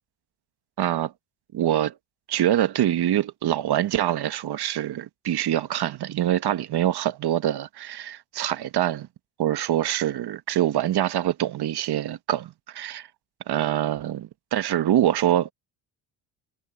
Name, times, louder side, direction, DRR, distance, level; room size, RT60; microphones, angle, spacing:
voice 1, 0.8-1.1 1.5-1.9 2.3-9.1 9.4-13.1 13.5-15.5, right 12 dB, 50° right, 1.3 m, -25 dB
supercardioid pair, 90°, 48 cm